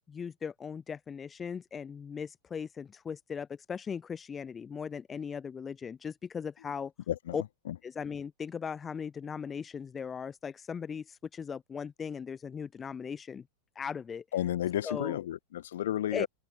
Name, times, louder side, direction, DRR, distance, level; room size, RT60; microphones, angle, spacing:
voice 1, 0.1-6.9 7.3-7.4 7.8-13.5 13.8-14.2 14.8-15.2 16.1-16.3, left 6 dB, 20° left, 0.5 m, -38 dB
voice 2, 7.1-7.4 7.7-7.8 14.3-16.3, left 12 dB, 60° left, 1.6 m, -32 dB
open air
figure-of-eight pair, 90°, 0 cm